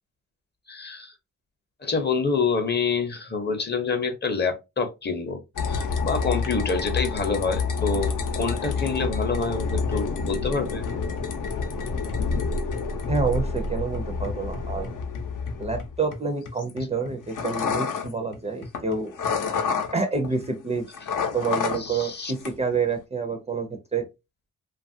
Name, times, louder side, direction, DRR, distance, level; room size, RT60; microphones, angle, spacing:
voice 1, 0.7-1.1 1.8-5.4 5.7-10.8 21.8-22.3, left 4 dB, 35° left, 0.6 m, -27 dB
sound 1, 5.6-20.5 20.8-22.1 22.4-22.9, left 5 dB, 80° left, 0.6 m, -28 dB
voice 2, 13.1-14.9 15.6-19.1 19.9-20.9 21.3-24.1, right 4 dB, 20° right, 0.4 m, -28 dB
2.9 x 2.3 x 2.5 m
wide cardioid pair, 130°, 31 cm